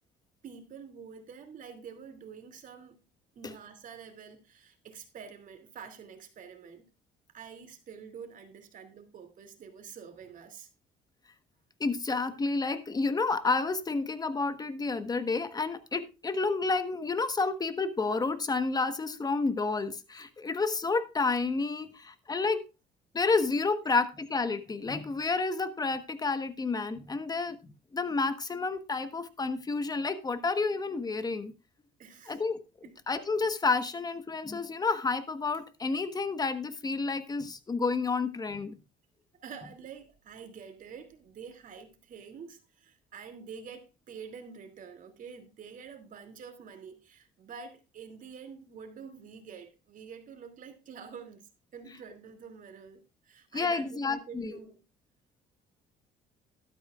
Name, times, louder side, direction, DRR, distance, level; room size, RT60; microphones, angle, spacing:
voice 1, 0.4-2.9 3.3-6.9 7.3-10.7 32.0-32.4 32.8-33.0 39.4-54.8, right 6 dB, 50° right, 2.7 m, -47 dB
voice 2, 11.8-22.6 23.1-31.5 32.3-32.6 33.1-38.8 53.5-54.6, left 4 dB, 25° left, 1.2 m, -30 dB
12.5 x 12.5 x 2.4 m
cardioid pair, 110°, 17 cm